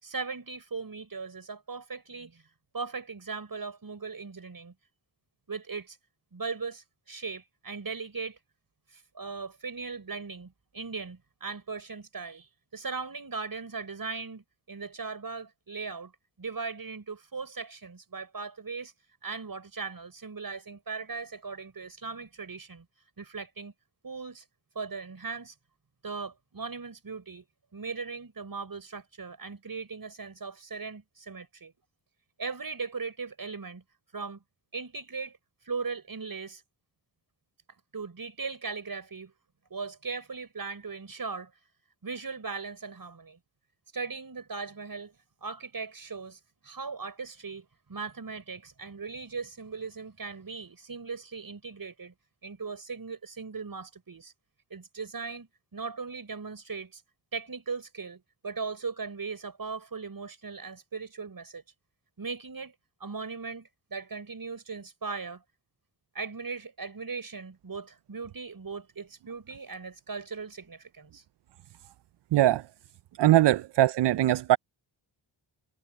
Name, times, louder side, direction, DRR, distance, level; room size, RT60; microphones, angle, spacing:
voice 1, 0.0-2.4 2.7-4.7 5.5-6.0 6.3-8.4 8.9-16.1 16.4-18.9 19.2-22.9 23.2-23.7 24.0-24.4 24.7-25.5 26.0-27.4 27.7-31.7 32.4-33.8 34.1-34.4 34.7-35.4 35.6-36.6 37.9-39.3 39.7-41.5 42.0-43.4 43.9-45.2 45.4-52.1 52.4-54.3 54.7-57.0 57.3-61.6 62.2-62.7 63.0-65.4 66.1-71.2, right 4 dB, 45° right, 6.3 m, -38 dB
voice 2, 72.3-72.6 73.2-74.6, right 14 dB, 60° right, 0.5 m, -21 dB
cardioid pair, 55°, 48 cm